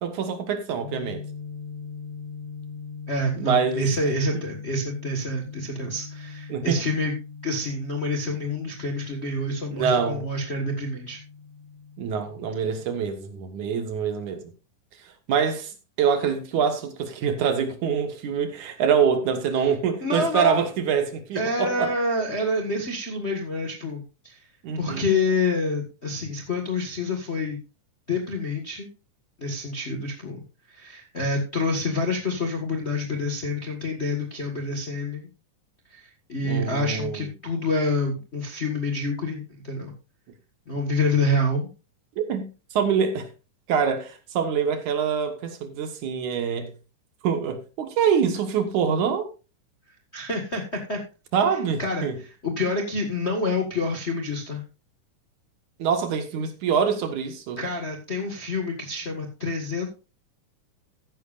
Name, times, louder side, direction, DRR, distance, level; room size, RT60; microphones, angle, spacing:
voice 1, 0.0-1.2 3.4-4.1 6.5-6.8 9.7-10.2 12.0-14.4 15.0-15.7 16.0-21.9 24.6-25.1 36.4-37.3 42.2-43.3 43.7-46.7 47.2-49.3 51.3-52.2 55.8-57.6, right 7 dB, 70° right, 2.8 m, -25 dB
sound 1, 0.8-13.1, left 5 dB, 65° left, 5.9 m, -41 dB
voice 2, 3.1-7.1 7.4-11.2 20.0-20.7 21.3-24.4 24.8-27.6 28.1-28.9 29.4-35.3 35.9-39.9 40.7-41.7 50.1-51.0 51.8-54.6 57.6-59.9, left 2 dB, 35° left, 1.0 m, -27 dB
14.5 x 10.5 x 2.5 m
omnidirectional pair, 3.6 m